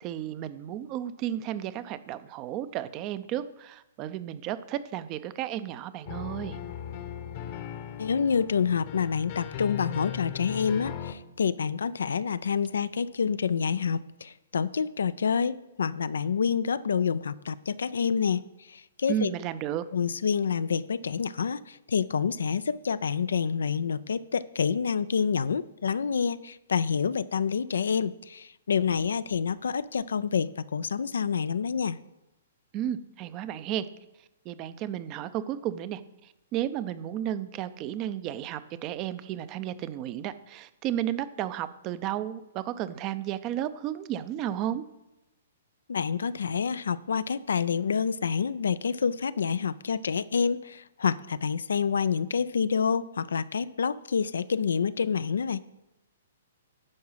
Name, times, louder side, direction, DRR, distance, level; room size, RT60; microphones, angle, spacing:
voice 1, 0.0-6.6 19.1-19.8 32.7-33.9 34.4-44.8, right 11 dB, 35° right, 14 dB, 0.5 m, -33 dB
sound 1, 6.1-11.1, left 10 dB, 45° left, 0.9 m, -38 dB
voice 2, 8.0-18.4 18.7-19.3 19.9-32.0 45.9-55.6, left 6 dB, 75° left, 16 dB, 0.3 m, -28 dB
10.5 x 4.7 x 5.6 m, 0.94 s
hypercardioid pair, 130°, 0 cm